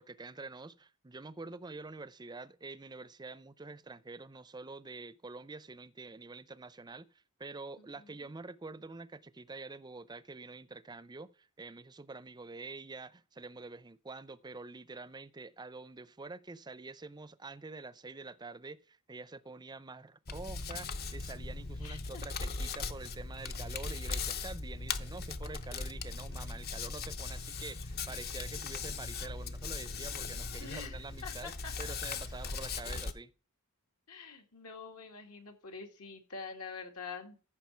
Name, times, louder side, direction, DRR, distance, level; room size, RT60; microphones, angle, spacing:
voice 1, 0.0-7.1 7.4-31.5 31.8-33.3, right 3 dB, 20° right, 0.5 m, -47 dB
voice 2, 7.8-8.3 21.8-22.2 30.6-31.9 34.1-37.4, left 5 dB, 75° left, 2.2 m, -46 dB
Hands, 20.3-33.1, left 4 dB, 45° left, 0.8 m, -39 dB
14.5 x 6.2 x 4.5 m
head